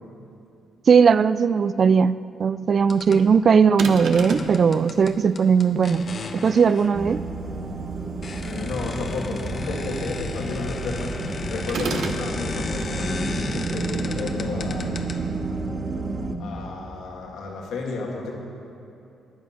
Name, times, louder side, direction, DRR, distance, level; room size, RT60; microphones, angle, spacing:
voice 1, 0.9-6.1 6.4-7.2, right 6 dB, 45° right, 16 dB, 0.4 m, -18 dB
sound 1, 2.8-3.3 4.1-7.2 7.9-8.0 8.2-15.5, left 4 dB, 45° left, 1.0 m, -35 dB
sound 2, 3.8-4.6 11.7-12.3, right 4 dB, 70° right, 1.1 m, -29 dB
sound 3, 6.9-16.4, right 3 dB, 30° right, 1.1 m, -31 dB
voice 2, 8.4-14.9 16.4-18.3, left 3 dB, 75° left, -1 dB, 2.3 m, -32 dB
14.0 x 9.5 x 5.9 m, 2.7 s
cardioid pair, 90°, 0 cm